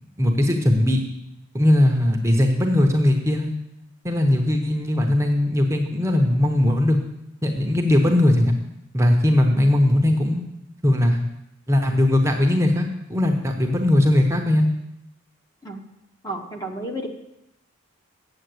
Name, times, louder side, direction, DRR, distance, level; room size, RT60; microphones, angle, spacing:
voice 1, 0.2-1.0 1.5-3.5 4.0-7.0 7.4-8.5 8.9-10.4 10.8-11.2 11.7-14.7, left 1 dB, 15° right, 2 dB, 0.9 m, -19 dB
voice 2, 16.2-17.1, right 1 dB, 15° left, 3 dB, 1.0 m, -31 dB
7.9 x 7.7 x 7.8 m, 0.86 s
head